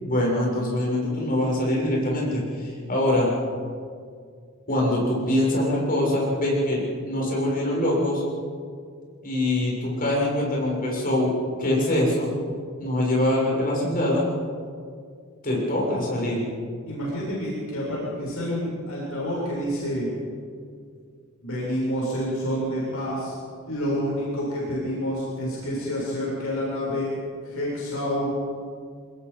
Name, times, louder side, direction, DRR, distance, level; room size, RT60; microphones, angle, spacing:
voice 1, 0.0-3.3 4.7-8.2 9.2-11.3 11.6-12.3 12.8-14.2 15.4-16.4, left 1 dB, 40° left, -3 dB, 7.1 m, -24 dB
voice 2, 16.9-20.1 21.4-23.4 23.7-27.1 27.4-28.4, equal, 75° left, -6 dB, 7.9 m, -28 dB
25.5 x 21.0 x 5.6 m, 2.1 s
head